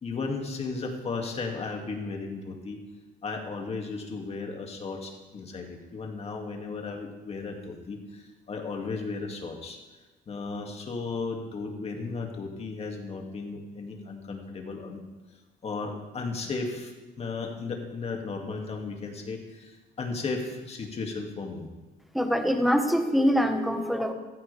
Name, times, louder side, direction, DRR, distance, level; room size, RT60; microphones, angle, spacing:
voice 1, 0.0-2.8 3.2-9.8 10.3-15.0 15.6-21.7, left 4 dB, 40° left, 2 dB, 2.4 m, -35 dB
voice 2, 22.1-24.1, equal, ahead, 5 dB, 1.4 m, -24 dB
15.5 x 14.0 x 3.5 m, 1.2 s
cardioid pair, 110°, 17 cm